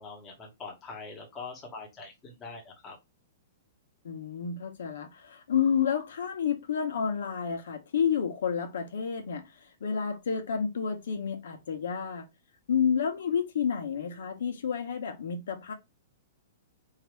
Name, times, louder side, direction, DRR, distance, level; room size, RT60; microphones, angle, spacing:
voice 1, 0.0-3.0, left 4 dB, 15° left, 1.4 m, -43 dB
voice 2, 4.0-12.2 12.7-15.7, left 7 dB, 80° left, 1.2 m, -30 dB
4.5 x 2.8 x 3.5 m
hypercardioid pair, 165°, 0 cm